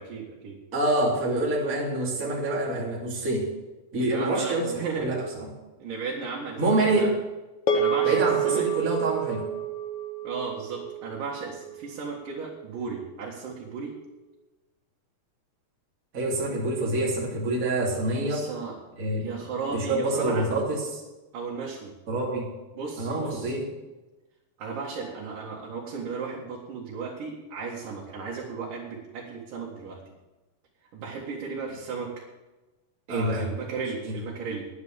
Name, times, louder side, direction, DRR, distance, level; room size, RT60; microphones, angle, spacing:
voice 1, 0.0-0.6 4.1-5.1 5.8-7.1 7.7-8.7 10.2-13.9 18.2-18.8 19.2-20.5 21.3-21.9 22.7-23.5 24.6-30.0 30.9-32.2 33.1-34.7, right 5 dB, 65° right, -4 dB, 3.3 m, -35 dB
voice 2, 0.7-3.5 3.9-5.5 6.6-7.1 8.0-9.5 16.1-18.5 19.0-19.3 19.7-21.0 22.1-22.5 23.0-23.7 33.1-33.5 34.0-34.1, right 2 dB, 25° right, -3 dB, 3.0 m, -26 dB
sound 1, 7.7-12.2, right 5 dB, 55° left, 1.8 m, -28 dB
11.0 x 9.5 x 7.2 m, 1.1 s
omnidirectional pair, 4.1 m